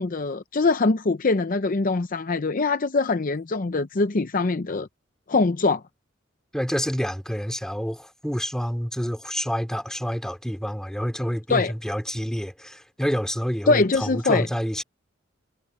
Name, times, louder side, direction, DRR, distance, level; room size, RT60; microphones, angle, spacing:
voice 1, 0.0-4.9 5.3-5.8 11.5-11.7 13.7-14.4, left 3 dB, 45° left, 0.6 m, -23 dB
voice 2, 6.5-14.8, equal, 5° left, 3.2 m, -28 dB
head